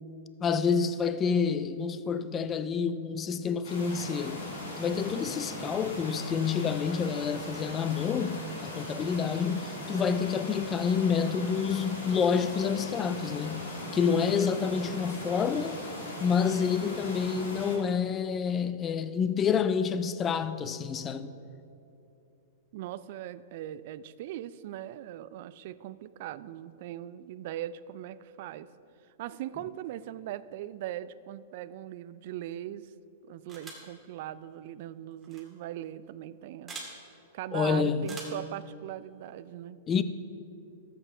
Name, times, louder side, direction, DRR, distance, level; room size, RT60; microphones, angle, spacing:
voice 1, 0.4-4.4 4.8-13.7 13.9-15.8 16.2-21.3 37.5-38.1 39.9-40.0, left 6 dB, 25° left, 0.4 m, -28 dB
sound 1, 3.6-17.7, left 1 dB, 80° left, 2.5 m, -39 dB
voice 2, 22.7-28.7 29.2-32.9 33.3-36.8 37.3-39.8, right 12 dB, 55° right, 0.3 m, -40 dB
sound 2, 33.5-33.9 35.2-35.4 36.7-36.9 38.0-38.5, right 3 dB, 15° right, 2.3 m, -43 dB
13.0 x 7.9 x 3.4 m
hypercardioid pair, 115°, 0 cm